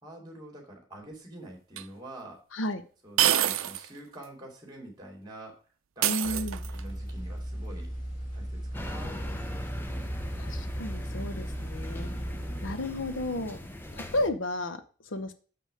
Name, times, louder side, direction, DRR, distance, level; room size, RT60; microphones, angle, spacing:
voice 1, 0.0-2.4 3.0-5.5 6.0-7.9 8.3-10.1 12.4-12.7, right 1 dB, 20° right, 1 dB, 2.6 m, -46 dB
sound 1, 1.8-1.9 3.2-3.9 4.2-4.3 6.0-6.9, right 11 dB, 85° right, 0.5 m, -26 dB
voice 2, 2.5-2.8 6.0-6.6 10.4-12.1 12.6-13.6 13.9-15.3, left 1 dB, 75° left, 11 dB, 0.8 m, -33 dB
sound 2, 6.2-12.7, equal, 40° left, 1.8 m, -37 dB
sound 3, 8.7-14.3, left 1 dB, 10° left, 0.6 m, -40 dB
6.9 x 5.6 x 4.9 m, 0.39 s
head